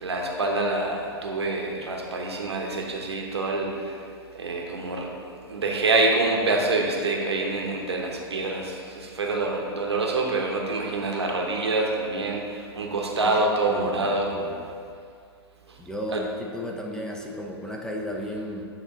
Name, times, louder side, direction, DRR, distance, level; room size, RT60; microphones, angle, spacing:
voice 1, 0.0-4.0 4.4-5.1 5.5-14.3 16.1-16.2, right 2 dB, 85° right, 1 dB, 0.9 m, -26 dB
voice 2, 13.7-14.7 15.8-18.6, left 1 dB, 5° left, 0 dB, 0.6 m, -34 dB
9.3 x 3.1 x 3.7 m, 2.4 s
hypercardioid pair, 105°, 13 cm